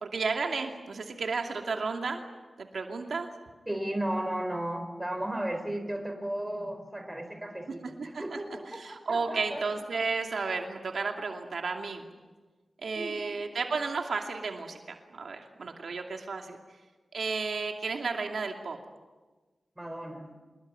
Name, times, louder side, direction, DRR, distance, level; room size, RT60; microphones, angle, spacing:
voice 1, 0.0-2.2 2.6-3.3 8.0-8.4 8.7-12.0 12.8-16.6 17.1-18.8, right 4 dB, 70° right, 3 dB, 2.5 m, -33 dB
voice 2, 3.7-8.7 9.1-9.6 13.0-13.2 19.8-20.3, right 1 dB, 10° right, 6 dB, 4.4 m, -34 dB
26.0 x 22.0 x 9.6 m, 1.3 s
wide cardioid pair, 145°, 0 cm